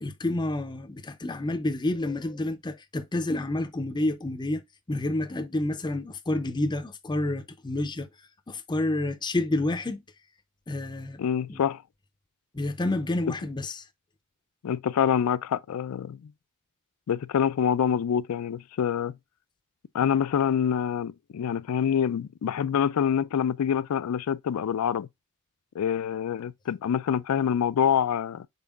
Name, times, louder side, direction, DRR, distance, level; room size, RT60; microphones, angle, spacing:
voice 1, 0.0-4.6 4.9-8.1 8.5-10.0 10.7-11.2 11.5-11.6 12.5-13.9, left 2 dB, 20° left, 0.5 m, -29 dB
voice 2, 11.2-11.8 14.6-16.3 17.1-19.1 19.9-25.1 25.7-28.5, left 8 dB, 75° left, 0.4 m, -26 dB
5.5 x 4.3 x 2.2 m
head